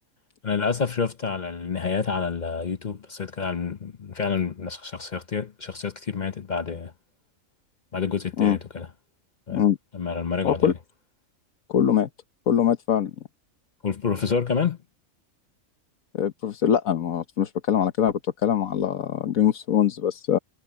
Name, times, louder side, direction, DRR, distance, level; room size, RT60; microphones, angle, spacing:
voice 1, 0.4-6.9 7.9-8.9 9.5-9.6 9.9-10.7 13.8-14.8, left 5 dB, 45° left, 0.7 m, -28 dB
voice 2, 11.7-12.1 12.5-13.1 16.1-20.4, left 9 dB, 85° left, 1.6 m, -22 dB
omnidirectional pair, 1.4 m